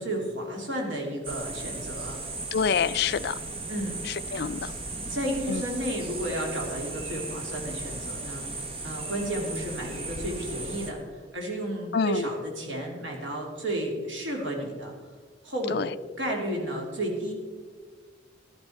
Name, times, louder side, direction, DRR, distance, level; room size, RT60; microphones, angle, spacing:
voice 1, 0.0-2.2 3.7-4.0 4.3-4.4 5.1-14.9 15.4-15.8 16.2-17.3, right 1 dB, 80° right, 0 dB, 3.0 m, -32 dB
sound 1, 1.2-10.9, right 2 dB, 30° right, 1.2 m, -36 dB
voice 2, 2.5-3.4 4.3-4.7 5.5-5.6 11.9-12.2 15.7-15.9, left 6 dB, 60° left, 16 dB, 0.4 m, -26 dB
13.5 x 11.5 x 4.5 m, 1.5 s
head